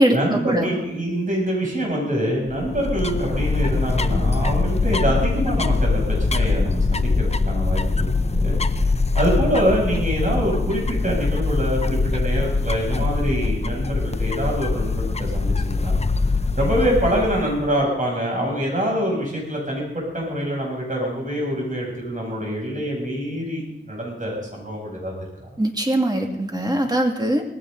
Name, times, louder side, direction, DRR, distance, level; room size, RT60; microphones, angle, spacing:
voice 1, 0.1-8.6 9.2-16.0 16.6-25.1 25.4-25.5, equal, 40° right, -2 dB, 7.6 m, -25 dB
sound 1, 2.5-17.7, left 3 dB, 35° left, 0.6 m, -23 dB
voice 2, 25.6-27.4, right 1 dB, 20° right, 2 dB, 2.4 m, -20 dB
19.0 x 16.0 x 4.0 m, 0.88 s
wide cardioid pair, 80°, 20 cm